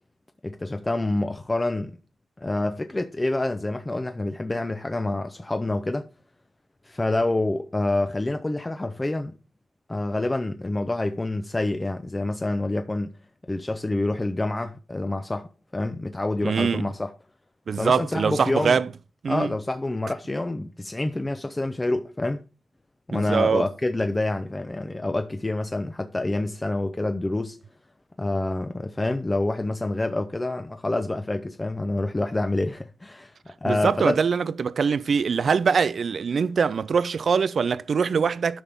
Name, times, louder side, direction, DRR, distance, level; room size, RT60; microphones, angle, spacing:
voice 1, 0.4-2.0 2.4-6.1 6.8-9.4 9.9-13.1 13.5-17.1 17.8-18.8 19.3-22.4 23.1-27.6 28.2-33.4 33.6-34.2, left 2 dB, 20° left, 0.6 m, -27 dB
voice 2, 16.4-16.8 17.7-18.9 19.2-19.5 23.1-23.7 33.7-38.6, right 6 dB, 60° right, 0.4 m, -23 dB
12.0 x 5.7 x 3.5 m
wide cardioid pair, 95°, 0 cm